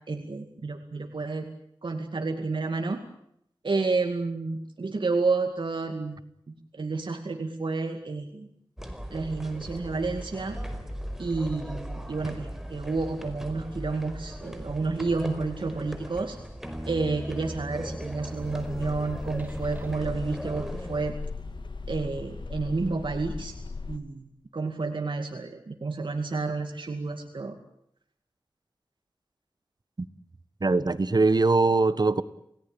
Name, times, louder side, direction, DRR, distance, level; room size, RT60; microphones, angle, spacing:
voice 1, 0.1-1.5 1.8-3.0 3.6-6.2 6.5-8.5 9.1-10.6 11.2-16.4 16.9-21.2 21.9-23.5 23.9-27.6, right 3 dB, 65° right, 5 dB, 2.3 m, -30 dB
sound 1, 8.8-21.1, equal, 5° right, 4.8 m, -39 dB
sound 2, 16.6-21.5, equal, 20° right, 4.7 m, -41 dB
sound 3, 18.4-24.0, left 4 dB, 60° left, 2.3 m, -38 dB
voice 2, 30.6-32.2, right 3 dB, 50° right, 14 dB, 1.4 m, -22 dB
29.0 x 18.0 x 9.0 m, 0.76 s
wide cardioid pair, 55°, 9 cm